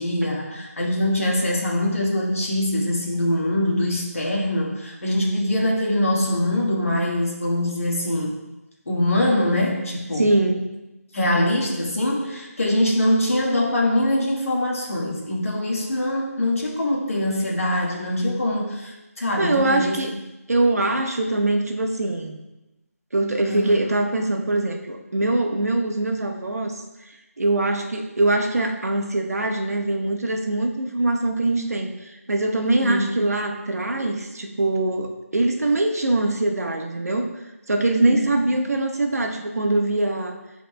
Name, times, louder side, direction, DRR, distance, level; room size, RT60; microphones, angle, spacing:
voice 1, 0.0-8.4 8.8-10.3 11.1-20.0 23.5-23.7 32.8-33.0 38.1-38.3, left 1 dB, 60° left, -2 dB, 1.6 m, -23 dB
voice 2, 10.1-10.7 19.4-20.1 20.5-22.4 23.1-40.4, right 2 dB, 70° right, 3 dB, 1.1 m, -23 dB
11.5 x 4.2 x 2.3 m, 0.99 s
figure-of-eight pair, 180°, 8 cm